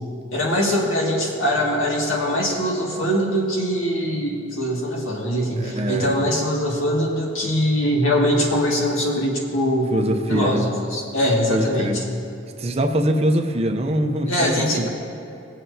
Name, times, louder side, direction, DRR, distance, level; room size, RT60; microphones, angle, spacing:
voice 1, 0.3-10.0 10.3-12.0 14.3-14.9, equal, 85° left, -3 dB, 2.0 m, -22 dB
voice 2, 5.6-6.2 9.9-10.6 11.5-12.0 12.6-14.9, right 1 dB, 30° right, 5 dB, 0.6 m, -23 dB
19.0 x 7.6 x 2.7 m, 2.7 s
head